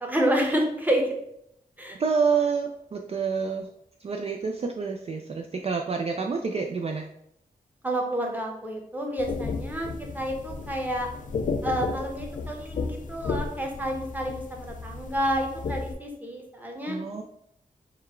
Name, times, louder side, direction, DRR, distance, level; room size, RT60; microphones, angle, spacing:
voice 1, 0.0-1.1 1.8-2.0 7.8-9.9 10.1-11.1 11.6-17.0, right 1 dB, 10° right, 1 dB, 0.9 m, -29 dB
voice 2, 1.9-3.7 4.0-7.1 16.8-17.2, right 5 dB, 40° right, 2 dB, 0.4 m, -28 dB
sound 1, 9.2-15.9, left 4 dB, 55° left, 0.4 m, -33 dB
3.8 x 2.1 x 4.4 m, 0.75 s
wide cardioid pair, 75°, 16 cm